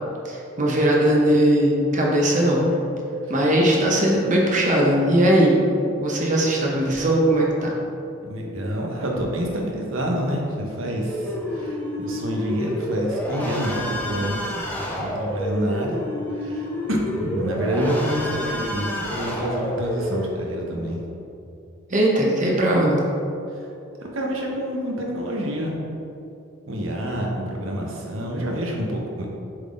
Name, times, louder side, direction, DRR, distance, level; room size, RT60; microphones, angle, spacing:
voice 1, 0.2-2.8 3.3-5.5 6.0-7.7 21.9-23.0, right 1 dB, 40° right, -2 dB, 0.9 m, -19 dB
voice 2, 8.2-14.4 15.0-16.0 16.3-21.0 23.5-23.7 24.0-25.8 26.6-29.3, equal, 80° right, -1 dB, 1.1 m, -27 dB
sound 1, 11.1-20.3, equal, 10° left, 0.8 m, -29 dB
7.5 x 3.9 x 3.8 m, 2.7 s
head